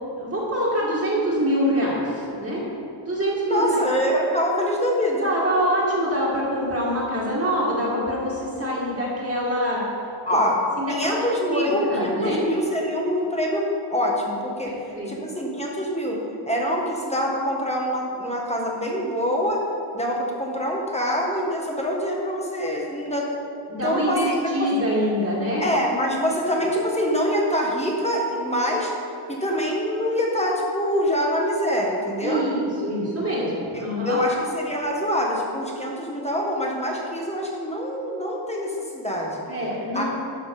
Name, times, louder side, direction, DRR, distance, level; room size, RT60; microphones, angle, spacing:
voice 1, 0.2-2.6 3.0-3.8 5.2-9.8 10.3-10.4 10.8-11.1 11.5-12.4 15.0-15.1 23.7-25.6 26.3-26.4 32.2-34.2 39.5-40.0, equal, 30° right, -6 dB, 2.2 m, -25 dB
voice 2, 3.4-5.3 10.3-10.6 10.9-14.7 15.1-19.6 19.9-23.3 23.8-24.3 24.6-24.7 25.6-28.9 29.3-32.4 33.7-39.4 39.9-40.0, equal, 15° left, -2 dB, 1.3 m, -25 dB
12.5 x 6.1 x 4.9 m, 2.8 s
wide cardioid pair, 125°, 49 cm